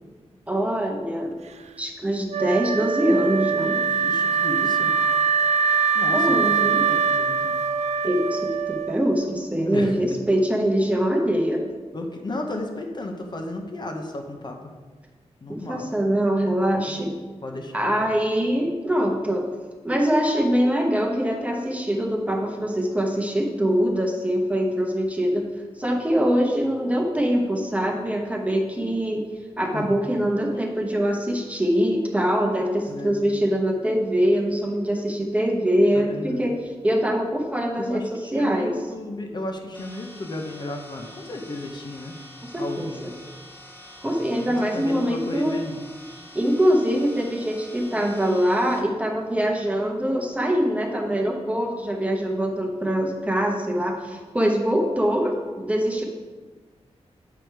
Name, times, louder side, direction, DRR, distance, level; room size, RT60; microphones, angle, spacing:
voice 1, 0.5-1.3 1.8-3.8 6.1-6.8 8.0-11.6 15.5-17.1 17.7-19.5 19.8-25.4 25.8-29.2 29.6-38.7 42.4-43.1 44.0-45.6 46.3-56.0, equal, 10° right, 1 dB, 0.8 m, -23 dB
Wind instrument woodwind instrument, 2.3-9.3, right 6 dB, 85° right, 0.5 m, -23 dB
voice 2, 3.9-4.9 5.9-6.4 6.9-7.6 9.7-10.0 11.9-14.6 15.4-15.9 17.4-18.1 29.7-30.0 32.9-33.3 35.9-36.5 37.8-42.1 42.6-43.1 44.5-45.8, left 1 dB, 40° left, 3 dB, 0.8 m, -33 dB
sound 1, 39.7-48.8, left 1 dB, 15° left, 1.0 m, -46 dB
7.8 x 4.8 x 4.6 m, 1.4 s
wide cardioid pair, 160°, 11 cm